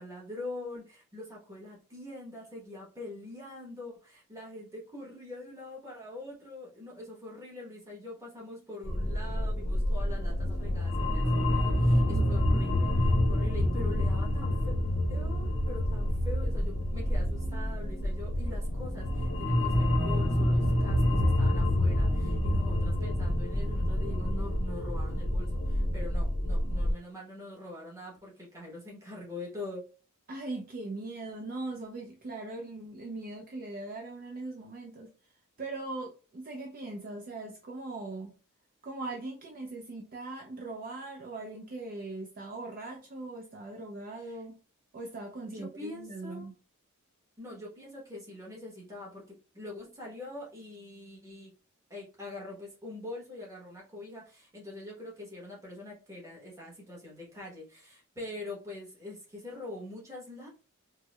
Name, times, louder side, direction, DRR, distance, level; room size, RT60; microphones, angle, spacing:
voice 1, 0.0-14.7 15.1-29.8 44.2-44.4 45.4-46.5 47.4-49.2 49.5-51.5 51.9-60.5, left 2 dB, 15° right, -3 dB, 1.0 m, -44 dB
sound 1, 8.8-26.9, left 1 dB, 60° left, 0.7 m, -28 dB
voice 2, 30.3-38.4 38.8-44.6 44.9-46.5, right 2 dB, 40° right, 1 dB, 0.4 m, -40 dB
4.5 x 2.1 x 2.2 m, 0.36 s
head